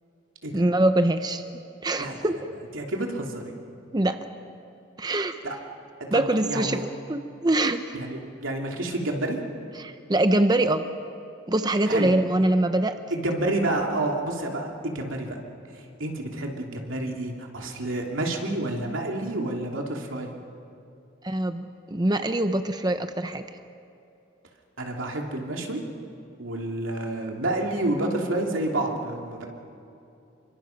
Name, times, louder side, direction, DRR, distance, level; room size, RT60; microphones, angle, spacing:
voice 1, 0.5-1.4 1.8-2.5 3.9-4.2 5.0-5.4 6.1-8.0 9.8-10.8 11.5-13.0 21.2-23.4, right 1 dB, 20° right, 8 dB, 0.7 m, -24 dB
voice 2, 2.7-3.5 5.4-5.5 6.0-6.8 7.9-9.4 11.9-12.1 13.1-15.4 16.0-20.3 24.8-25.8 26.4-29.5, right 1 dB, 90° right, 1 dB, 2.9 m, -29 dB
28.0 x 24.0 x 5.9 m, 2.7 s
head